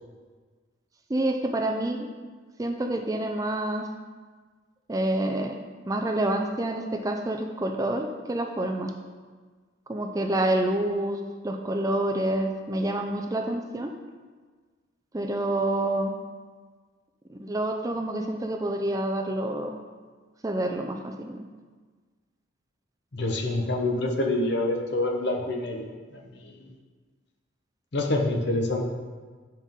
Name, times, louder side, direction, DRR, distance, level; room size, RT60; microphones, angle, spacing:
voice 1, 1.1-2.1 2.6-3.9 4.9-5.6 5.9-8.9 9.9-13.9 15.1-16.1 17.3-19.8 20.4-21.5, right 1 dB, 15° right, 4 dB, 0.4 m, -28 dB
voice 2, 23.1-25.9 26.1-26.7 27.9-28.8, left 2 dB, 55° left, 2 dB, 0.9 m, -27 dB
8.2 x 5.5 x 3.6 m, 1.5 s
head